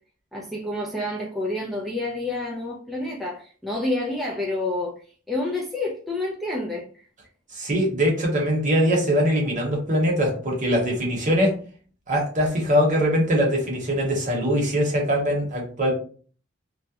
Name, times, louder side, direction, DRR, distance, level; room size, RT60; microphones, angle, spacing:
voice 1, 0.3-4.9 5.3-7.0, left 2 dB, ahead, -4 dB, 0.3 m, -28 dB
voice 2, 7.5-11.6 12.1-15.9, equal, 40° right, -1 dB, 0.9 m, -22 dB
2.3 x 2.0 x 2.7 m, 0.42 s
head